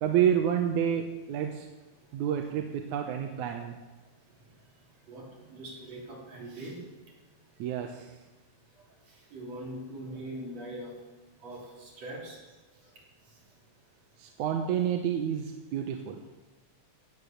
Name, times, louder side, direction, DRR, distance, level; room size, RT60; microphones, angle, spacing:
voice 1, 0.0-1.7 2.1-3.8 7.6-8.1 14.2-16.2, right 9 dB, 90° right, 4 dB, 2.3 m, -29 dB
voice 2, 5.1-6.8 9.1-11.0 11.4-12.4, right 1 dB, 60° right, -2 dB, 4.4 m, -42 dB
16.5 x 9.0 x 6.7 m, 1.1 s
omnidirectional pair, 3.3 m